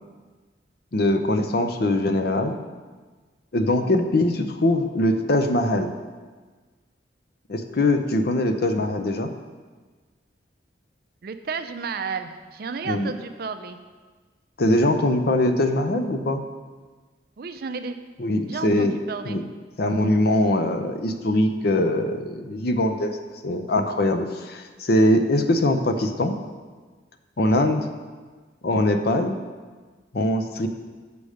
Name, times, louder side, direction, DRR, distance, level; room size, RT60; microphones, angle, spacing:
voice 1, 0.9-2.6 3.5-5.9 7.5-9.3 12.9-13.1 14.6-16.4 18.2-19.0 19.2-19.4 19.8-23.2 23.4-26.4 27.4-27.9 28.6-29.4 30.1-30.7, left 1 dB, 55° left, 7 dB, 0.6 m, -22 dB
voice 2, 11.2-13.8 17.4-18.0 18.5-19.4, right 5 dB, 55° right, 8 dB, 0.4 m, -32 dB
6.9 x 5.0 x 6.4 m, 1.4 s
head